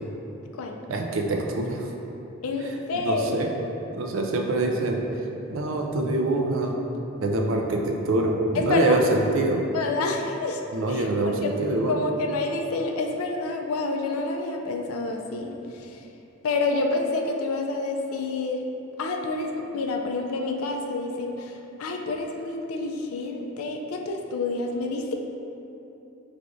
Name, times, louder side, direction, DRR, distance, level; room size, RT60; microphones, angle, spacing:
voice 1, 0.9-1.9 2.9-3.5 3.9-5.0 5.5-6.8 7.2-9.6 10.7-12.0, right 2 dB, 70° right, 2 dB, 0.4 m, -25 dB
voice 2, 2.4-3.8 8.5-9.1 9.7-10.6 10.9-11.6 11.9-16.0 16.4-18.7 19.0-25.1, left 3 dB, 85° left, 3 dB, 0.4 m, -28 dB
4.8 x 3.3 x 2.5 m, 2.9 s
head